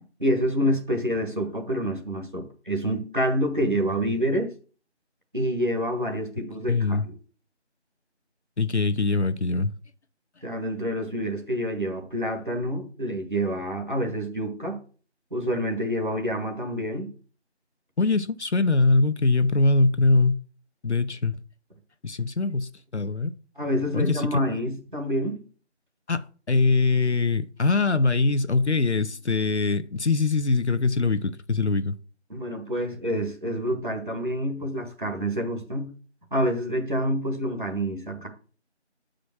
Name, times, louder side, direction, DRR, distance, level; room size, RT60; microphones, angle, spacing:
voice 1, 0.2-4.5 5.3-7.0 10.4-14.8 15.3-17.1 23.6-25.4 32.3-35.9 36.3-38.3, equal, 45° right, 1.6 m, -27 dB
voice 2, 6.7-7.0 8.6-9.7 18.0-20.4 20.8-21.4 22.0-23.3 23.9-24.4 26.1-31.9, left 3 dB, 70° left, 0.7 m, -23 dB
7.5 x 5.1 x 6.1 m
figure-of-eight pair, 180°, 35 cm